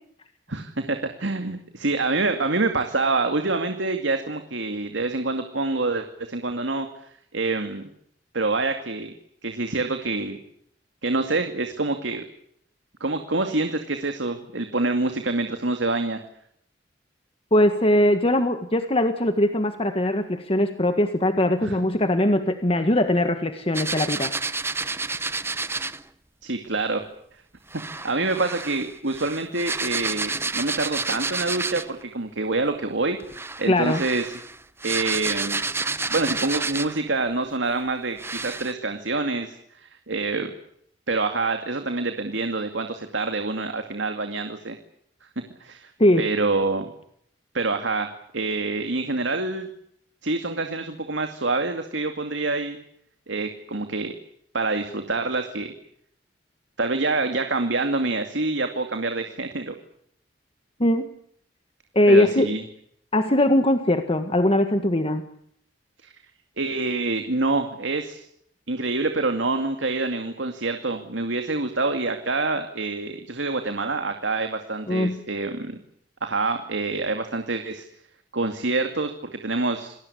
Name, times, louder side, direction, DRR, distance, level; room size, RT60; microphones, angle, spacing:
voice 1, 0.5-6.9 7.3-7.8 8.3-9.1 9.4-10.4 11.0-12.2 13.0-16.2 21.6-21.8 26.4-27.0 27.9-33.2 33.6-34.3 34.8-35.6 36.1-40.5 41.1-44.8 45.6-45.9 46.2-46.9 47.5-49.7 50.2-52.8 53.3-54.1 54.5-55.7 56.8-59.7 62.1-62.6 66.0-66.1 66.6-68.3 68.7-75.8 76.2-77.9 78.3-79.1 79.4-79.9, right 3 dB, 85° right, 6 dB, 2.3 m, -26 dB
voice 2, 17.5-24.3 33.6-34.0 46.0-46.2 60.8-61.1 61.9-62.5 63.1-65.2 74.9-75.2, left 1 dB, 30° left, 8 dB, 1.7 m, -21 dB
sound 1, 23.7-26.0 27.7-32.0 33.2-37.1 37.7-37.8 38.2-38.7, right 3 dB, 15° right, 1.0 m, -30 dB
28.0 x 20.0 x 8.5 m, 0.70 s
head